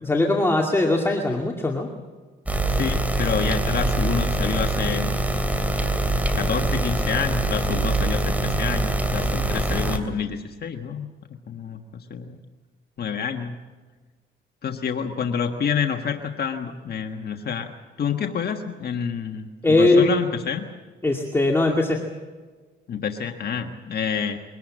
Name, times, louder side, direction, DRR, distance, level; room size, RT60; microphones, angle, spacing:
voice 1, 0.0-1.9 19.6-20.1 21.0-22.0, left 2 dB, 10° left, 0 dB, 2.3 m, -20 dB
sound 1, 2.5-10.0, right 2 dB, 5° right, 3.0 m, -24 dB
voice 2, 2.7-5.2 6.3-11.1 11.5-12.4 13.0-13.6 14.6-17.7 18.0-20.6 22.9-24.4, left 7 dB, 55° left, 4 dB, 1.5 m, -28 dB
23.5 x 18.5 x 7.6 m, 1.4 s
cardioid pair, 90°, 20 cm